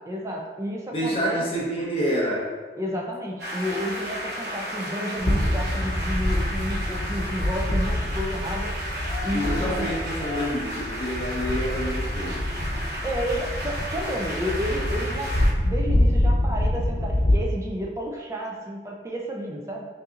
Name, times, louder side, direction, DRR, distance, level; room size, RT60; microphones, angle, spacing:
voice 1, 0.1-1.7 2.8-8.7 9.2-9.9 13.0-15.3 15.6-19.9, equal, 15° right, -2 dB, 0.5 m, -31 dB
voice 2, 0.9-2.5 9.3-12.4, equal, 30° left, -5 dB, 0.8 m, -27 dB
sound 1, 3.4-15.5, equal, 65° right, 0.8 m, -33 dB
sound 2, 5.2-17.4, left 1 dB, 80° left, 0.7 m, -26 dB
5.4 x 2.7 x 2.5 m, 1.4 s
head